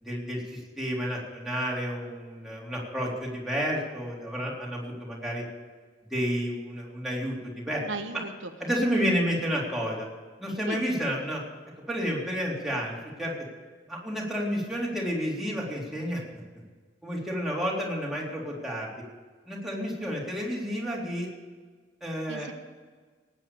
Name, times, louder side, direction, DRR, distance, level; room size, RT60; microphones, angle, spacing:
voice 1, 0.0-5.4 6.1-7.8 8.6-10.1 10.4-11.4 11.9-13.3 13.9-16.2 17.0-18.9 19.5-21.3 22.0-22.5, equal, ahead, -4 dB, 3.8 m, -30 dB
voice 2, 7.8-8.5 10.7-10.8 22.3-22.5, right 3 dB, 80° right, 6 dB, 1.2 m, -36 dB
18.5 x 9.2 x 7.1 m, 1.4 s
head